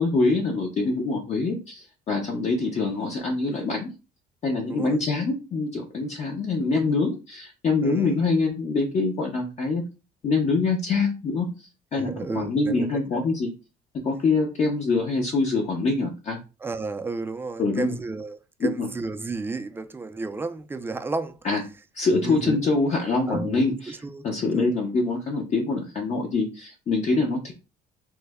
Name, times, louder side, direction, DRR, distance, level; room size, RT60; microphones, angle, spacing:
voice 1, 0.0-3.9 4.4-9.8 10.2-13.5 14.0-16.4 17.6-17.9 18.6-18.9 21.4-21.6 21.9-23.9 24.2-27.5, left 3 dB, 40° left, 0.7 m, -25 dB
voice 2, 4.7-5.0 7.8-8.2 11.9-12.9 13.1-13.3 16.6-21.4 22.1-22.6 23.3-24.3 24.5-24.7, right 3 dB, 15° right, 0.3 m, -33 dB
3.1 x 2.0 x 3.4 m
cardioid pair, 110°, 17 cm